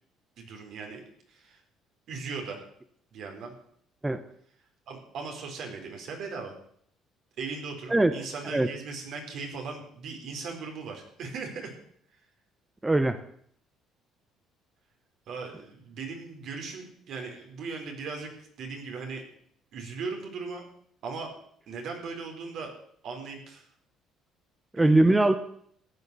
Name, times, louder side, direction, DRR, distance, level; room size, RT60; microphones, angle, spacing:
voice 1, 0.4-1.0 1.3-1.6 2.1-2.6 3.1-3.5 4.9-6.5 7.4-11.7 15.3-18.3 18.6-19.2 19.7-20.6 21.0-21.3 21.7-22.7 23.0-23.7 24.8-25.2, right 4 dB, 65° right, 3 dB, 4.3 m, -38 dB
voice 2, 12.8-13.2 24.8-25.3, right 2 dB, 15° right, 10 dB, 0.9 m, -21 dB
14.5 x 9.7 x 6.9 m, 0.65 s
cardioid pair, 100°, 0 cm